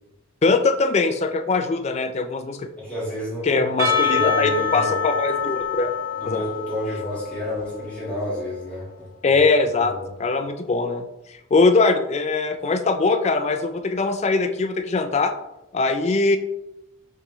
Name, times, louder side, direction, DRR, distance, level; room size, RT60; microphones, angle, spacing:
voice 1, 0.4-2.7 3.4-5.9 6.2-6.4 9.2-15.3 15.7-16.4, left 3 dB, 30° left, 8 dB, 0.3 m, -21 dB
voice 2, 2.8-4.9 6.2-9.4 9.8-10.1, equal, 5° left, -8 dB, 1.6 m, -30 dB
Percussion / Church bell, 3.8-8.3, left 6 dB, 15° right, 0.9 m, -26 dB
5.3 x 3.3 x 3.0 m, 0.91 s
head